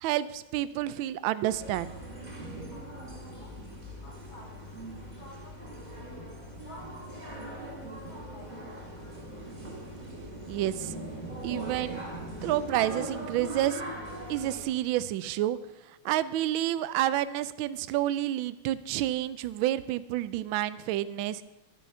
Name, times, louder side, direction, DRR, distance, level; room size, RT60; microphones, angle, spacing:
voice 1, 0.0-2.0 10.5-10.9 11.4-12.0 12.4-13.8 14.3-15.6 16.0-21.4, right 13 dB, 75° right, 14 dB, 1.3 m, -29 dB
sound 1, 1.5-14.6, right 1 dB, 20° right, 2.2 m, -40 dB
voice 2, 2.7-6.2 6.7-8.8, left 1 dB, 65° left, -2 dB, 3.7 m, -53 dB
12.0 x 9.2 x 5.5 m, 0.97 s
omnidirectional pair, 2.4 m